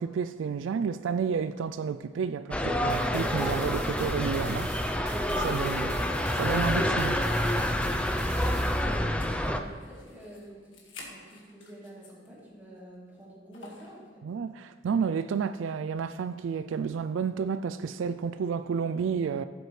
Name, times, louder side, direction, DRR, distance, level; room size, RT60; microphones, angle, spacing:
voice 1, 0.0-4.7 5.1-6.0 6.4-7.4 14.2-19.4, right 6 dB, 85° right, 0.3 m, -31 dB
sound 1, 2.5-9.6, left 1 dB, 5° left, 0.5 m, -28 dB
sound 2, 2.9-8.9, right 8 dB, 60° right, 0.8 m, -47 dB
sound 3, 8.7-12.4 12.8-12.9 13.5-14.0, left 3 dB, 75° left, 1.8 m, -50 dB
voice 2, 9.4-14.2, right 1 dB, 10° right, 3.0 m, -49 dB
15.0 x 7.9 x 3.2 m
head